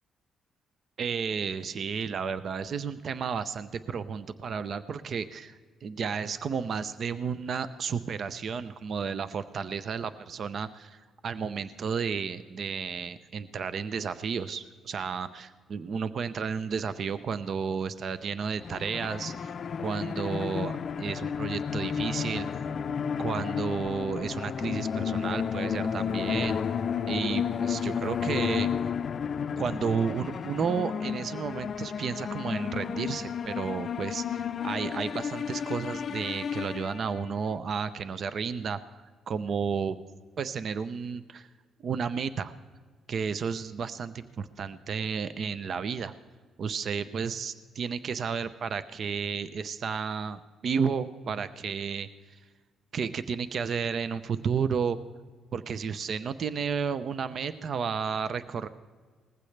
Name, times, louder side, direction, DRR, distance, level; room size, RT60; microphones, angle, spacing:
voice 1, 1.0-20.7 21.0-22.5 23.2-26.6 27.1-28.7 29.6-38.8 39.3-40.0 40.4-41.5 41.8-42.5 43.1-46.1 46.6-52.1 52.9-55.0 55.5-58.7, right 6 dB, 55° right, 13 dB, 0.6 m, -32 dB
sound 1, 18.6-37.4, left 7 dB, 55° left, 0.4 m, -32 dB
19.5 x 15.0 x 3.3 m, 1.5 s
cardioid pair, 90°, 0 cm